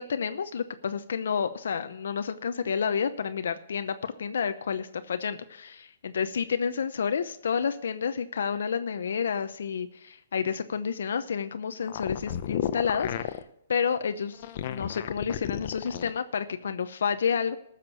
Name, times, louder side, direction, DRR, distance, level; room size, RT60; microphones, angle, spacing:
voice 1, 0.0-13.4 13.7-17.6, left 6 dB, 75° left, 10 dB, 0.8 m, -30 dB
sound 1, 11.8-13.4 14.3-16.2, left 11 dB, 50° left, 0.8 m, -32 dB
14.0 x 6.7 x 6.9 m, 0.76 s
hypercardioid pair, 150°, 0 cm